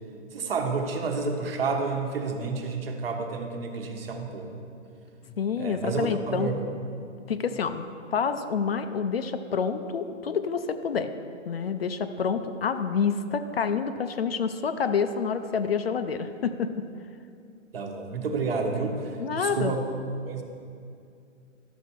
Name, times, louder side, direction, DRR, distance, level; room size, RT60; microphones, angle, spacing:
voice 1, 0.3-4.5 5.6-6.6 17.7-19.8 20.3-20.4, right 4 dB, 50° right, 3 dB, 1.2 m, -30 dB
voice 2, 5.3-6.5 7.3-11.1 11.5-16.8 19.2-19.7, left 6 dB, 50° left, 9 dB, 0.6 m, -28 dB
12.0 x 7.1 x 4.5 m, 2.4 s
hypercardioid pair, 165°, 38 cm